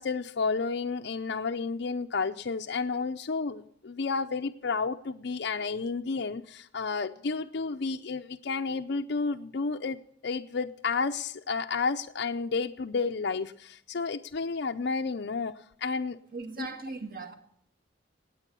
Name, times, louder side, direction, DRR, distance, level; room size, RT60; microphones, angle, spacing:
voice 1, 0.0-15.5 15.8-16.2 16.6-16.7, left 4 dB, 60° left, 5 dB, 0.5 m, -31 dB
voice 2, 16.3-17.3, right 3 dB, 50° right, 5 dB, 1.9 m, -38 dB
19.0 x 9.0 x 6.9 m, 0.65 s
head